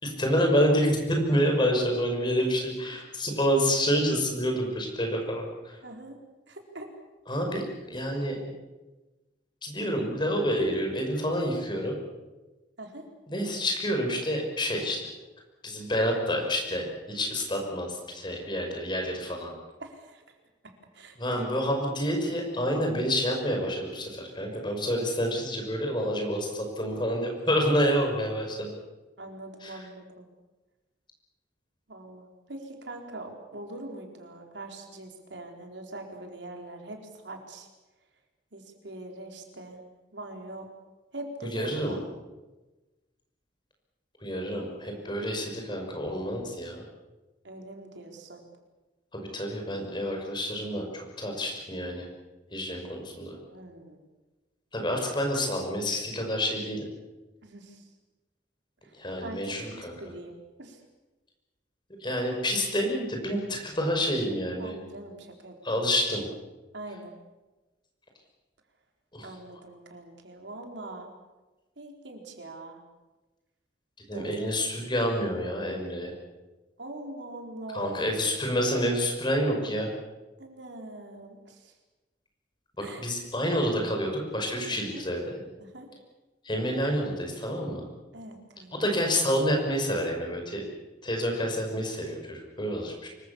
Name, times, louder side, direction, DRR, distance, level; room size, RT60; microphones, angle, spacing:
voice 1, 0.0-5.8 7.3-8.6 9.6-11.9 13.3-15.1 15.6-19.5 21.2-28.7 29.6-29.8 41.5-42.0 44.2-46.8 49.1-52.1 52.5-53.4 54.7-56.8 58.9-59.9 62.0-64.8 65.6-66.2 69.1-69.3 74.1-76.1 77.7-79.9 82.8-85.4 86.4-87.9 88.7-90.6 91.0-93.1, equal, 25° left, 2 dB, 5.9 m, -28 dB
voice 2, 5.8-6.2 6.5-6.9 12.8-13.1 19.8-20.2 20.6-21.5 29.2-30.3 31.9-37.7 38.5-39.8 40.1-40.7 41.1-42.0 47.4-48.4 53.5-54.0 57.4-57.9 58.8-60.8 64.6-65.8 66.7-67.1 69.2-71.1 71.8-72.8 74.1-74.6 76.8-78.0 80.4-81.7 82.8-83.0 84.9-85.0 85.6-85.9 88.1-88.8, right 2 dB, 75° right, 3 dB, 4.2 m, -43 dB
25.5 x 23.5 x 7.1 m, 1.1 s
head